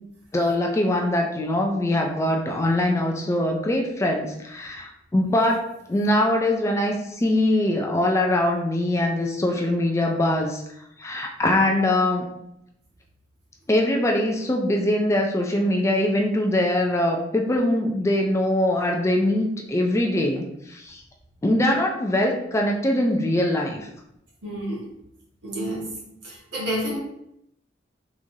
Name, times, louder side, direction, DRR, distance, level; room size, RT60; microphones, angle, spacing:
voice 1, 0.3-10.6 11.0-12.3 13.7-21.0 21.4-23.9, left 1 dB, 15° left, 1 dB, 0.3 m, -22 dB
voice 2, 24.4-24.8 25.4-25.9 26.2-27.0, equal, 70° right, -6 dB, 1.5 m, -29 dB
3.6 x 3.1 x 2.6 m, 0.81 s
head